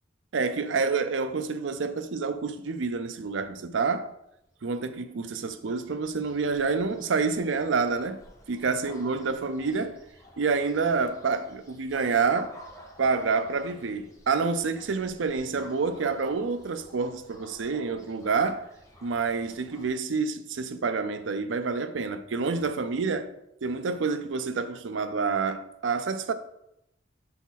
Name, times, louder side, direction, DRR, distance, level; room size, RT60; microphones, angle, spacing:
voice 1, 0.3-4.1 4.6-10.0 10.4-12.5 13.0-18.6 19.0-23.3 23.6-26.3, right 4 dB, 75° right, 0.5 m, -28 dB
sound 1, 4.5-19.9, equal, 15° left, 1.1 m, -52 dB
6.9 x 4.1 x 4.1 m
head